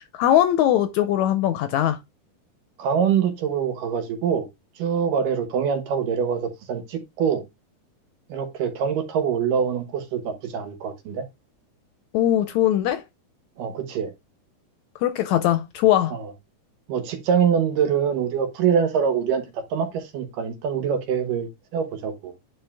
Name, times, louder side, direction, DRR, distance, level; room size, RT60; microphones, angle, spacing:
voice 1, 0.1-2.0 12.1-13.0 15.0-16.2, left 12 dB, 80° left, 1.7 m, -20 dB
voice 2, 2.8-4.5 4.8-7.4 8.3-11.2 13.6-14.1 16.1-16.3 16.9-22.3, right 7 dB, 90° right, 3.0 m, -24 dB
9.8 x 3.8 x 3.3 m
omnidirectional pair, 3.7 m